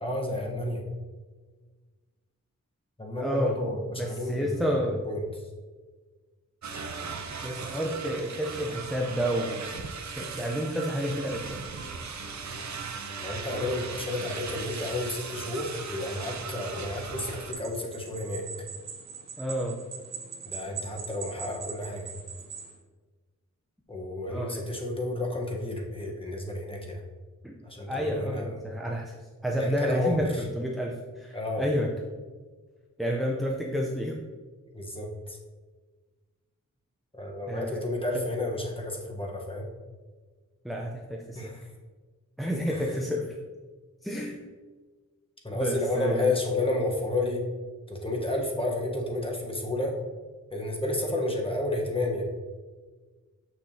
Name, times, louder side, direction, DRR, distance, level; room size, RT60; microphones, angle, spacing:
voice 1, 0.0-0.8 3.0-5.5 13.1-18.5 20.4-22.1 23.9-27.0 27.6-28.6 29.6-30.5 31.3-31.7 34.7-35.4 37.1-39.7 41.3-41.7 42.7-43.0 45.4-47.4 47.9-49.9 50.5-52.2, left 2 dB, 15° left, -1 dB, 1.0 m, -31 dB
voice 2, 3.2-3.6 4.0-5.0 7.4-9.9 10.2-11.6 19.4-19.8 24.3-24.6 27.4-27.5 27.9-29.1 29.4-30.3 30.5-31.9 33.0-34.2 37.5-37.8 40.6-41.5 42.4-43.2 44.0-44.4 45.5-46.3, equal, ahead, -1 dB, 0.5 m, -30 dB
sound 1, 6.6-17.5, right 5 dB, 60° right, 0.7 m, -38 dB
sound 2, 17.5-22.7, right 5 dB, 80° right, 1.0 m, -41 dB
6.7 x 6.1 x 2.7 m, 1.4 s
wide cardioid pair, 110°, 32 cm